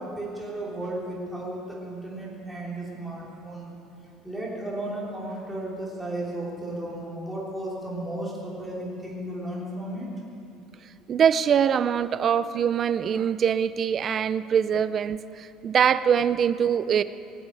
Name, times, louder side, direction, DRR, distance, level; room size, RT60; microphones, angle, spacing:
voice 1, 0.0-3.7 4.2-10.1, right 1 dB, 5° right, -5 dB, 3.4 m, -34 dB
voice 2, 11.1-17.0, right 8 dB, 30° right, 15 dB, 0.4 m, -23 dB
20.0 x 8.0 x 9.1 m, 2.8 s
cardioid pair, 165°, 0 cm